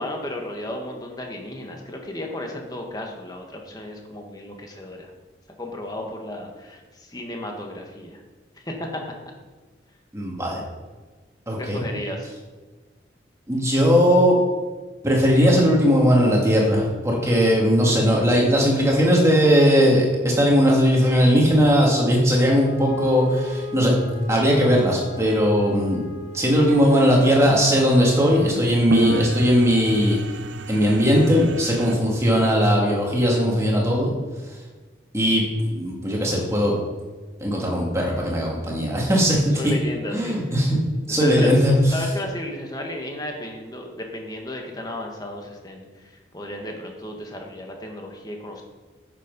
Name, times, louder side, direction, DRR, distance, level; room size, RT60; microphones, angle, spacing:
voice 1, 0.0-5.1 5.6-8.2 8.6-9.0 11.5-12.3 39.6-40.4 40.6-40.7 41.2-41.5 41.9-48.6, left 1 dB, 20° left, 2 dB, 1.4 m, -34 dB
voice 2, 10.1-10.6 11.5-11.8 13.5-14.4 15.0-23.9 24.3-26.0 26.3-30.2 30.7-34.1 35.1-35.4 35.7-36.7 37.4-39.6 40.1-40.8 41.1-41.9, equal, 15° right, -2 dB, 2.2 m, -18 dB
Wind instrument woodwind instrument, 22.3-27.0, left 2 dB, 75° left, 1.9 m, -36 dB
sound 1, 26.6-32.0, right 3 dB, 80° right, 0.6 m, -31 dB
8.9 x 7.2 x 5.4 m, 1.3 s
head